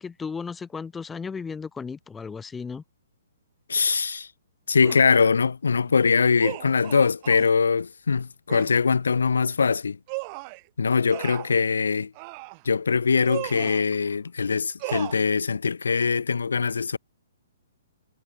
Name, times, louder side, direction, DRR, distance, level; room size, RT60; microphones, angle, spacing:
voice 1, 0.0-2.8 13.4-13.7, left 5 dB, 10° left, 0.6 m, -35 dB
voice 2, 3.7-4.3 4.7-10.0 10.8-12.1 12.7-17.0, left 5 dB, 70° left, 0.4 m, -22 dB
sound 1, 4.8-5.1 6.4-7.5 8.5-8.7 10.1-10.6 11.1-11.6 12.1-12.6 13.2-13.8 14.8-15.1, right 32 dB, 35° right, 0.4 m, -36 dB
figure-of-eight pair, 125°, 0 cm